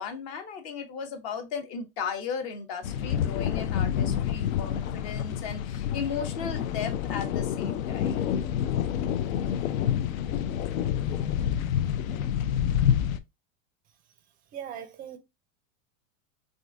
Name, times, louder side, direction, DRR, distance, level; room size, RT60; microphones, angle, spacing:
voice 1, 0.0-8.3, left 6 dB, 50° left, 0.9 m, -36 dB
sound 1, 2.8-13.2, left 9 dB, 80° left, 0.5 m, -28 dB
voice 2, 14.5-15.2, right 9 dB, 25° right, 0.4 m, -39 dB
3.7 x 2.5 x 2.4 m
hypercardioid pair, 120°, 40 cm